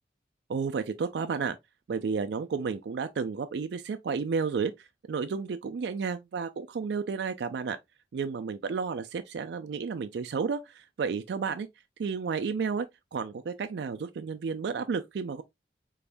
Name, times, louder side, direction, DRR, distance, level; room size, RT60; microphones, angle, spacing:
voice 1, 0.5-1.6 1.9-7.8 8.1-11.7 12.0-12.9 13.1-15.4, right 5 dB, 70° right, 0.4 m, -32 dB
3.9 x 3.4 x 2.5 m
head